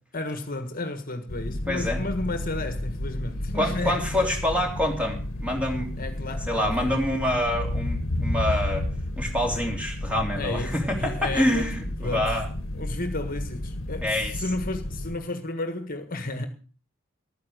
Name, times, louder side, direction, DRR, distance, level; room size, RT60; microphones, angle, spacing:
voice 1, 0.1-4.0 6.0-7.0 10.3-11.7 12.0-12.4 12.7-16.5, left 2 dB, 45° left, 1.5 m, -32 dB
sound 1, 1.3-15.2, left 1 dB, 85° left, 1.2 m, -32 dB
voice 2, 1.7-2.0 3.5-5.9 6.5-8.9 9.2-12.5 14.0-14.3, left 1 dB, 5° right, 3.3 m, -26 dB
12.5 x 9.8 x 6.5 m
head